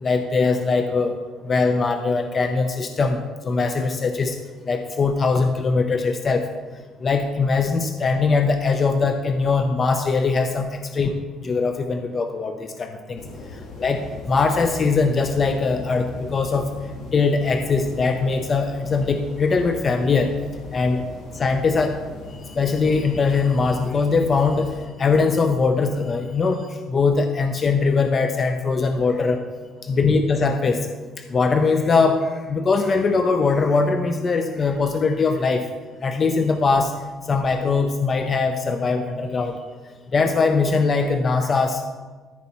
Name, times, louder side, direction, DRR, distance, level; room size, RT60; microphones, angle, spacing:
voice 1, 0.0-1.2 1.4-4.4 4.7-6.5 7.0-11.1 11.4-13.2 13.8-14.0 14.3-16.7 17.1-20.3 20.7-21.0 21.3-22.0 22.5-29.4 29.8-30.9 31.3-35.7 36.0-37.0 37.3-39.6 40.1-41.8, left 4 dB, 25° left, 6 dB, 0.4 m, -21 dB
sound 1, 13.2-24.8, left 3 dB, 80° left, 2.2 m, -39 dB
14.0 x 4.6 x 4.2 m, 1.4 s
cardioid pair, 165°, 0 cm